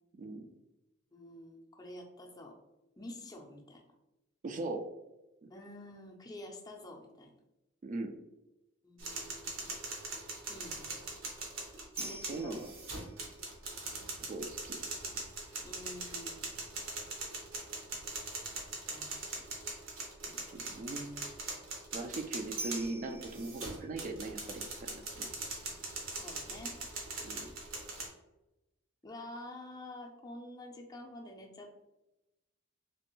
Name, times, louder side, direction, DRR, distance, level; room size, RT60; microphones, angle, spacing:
voice 1, 0.2-0.5 4.4-4.9 5.4-5.5 7.8-8.2 12.0-12.7 14.2-14.8 20.3-21.2 21.9-25.3 27.2-27.5, right 2 dB, 40° right, 6 dB, 0.3 m, -40 dB
voice 2, 1.1-2.6 3.0-3.8 5.5-7.3 8.8-9.9 10.5-10.9 12.1-12.6 13.8-14.0 15.6-16.5 18.8-19.4 26.1-26.8 29.0-31.8, left 1 dB, 20° left, 2 dB, 0.5 m, -48 dB
sound 1, 9.0-28.1, right 3 dB, 85° right, 1.0 m, -41 dB
3.3 x 3.0 x 3.0 m, 0.98 s
head